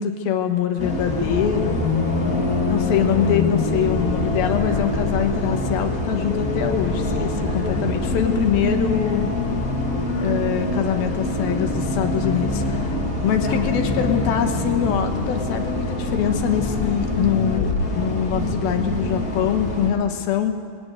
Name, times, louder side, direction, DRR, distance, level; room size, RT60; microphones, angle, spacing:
voice 1, 0.0-1.9 2.7-9.3 10.2-13.0 13.2-20.5, left 9 dB, 75° left, 5 dB, 2.9 m, -24 dB
Bus, 0.8-19.9, left 2 dB, 30° left, 2.0 m, -24 dB
19.5 x 16.5 x 9.4 m, 2.2 s
omnidirectional pair, 4.5 m